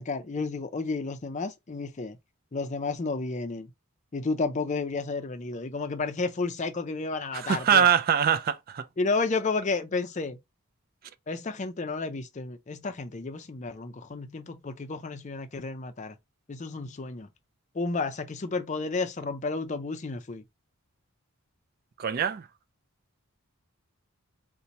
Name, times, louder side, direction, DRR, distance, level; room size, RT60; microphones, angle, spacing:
voice 1, 0.0-2.2 2.5-3.7 4.1-7.9 9.0-10.4 11.3-16.2 16.5-17.3 17.7-20.4, left 3 dB, 35° left, 0.4 m, -31 dB
voice 2, 7.3-8.8 22.0-22.4, right 8 dB, 40° right, 0.3 m, -23 dB
2.8 x 2.2 x 4.0 m
head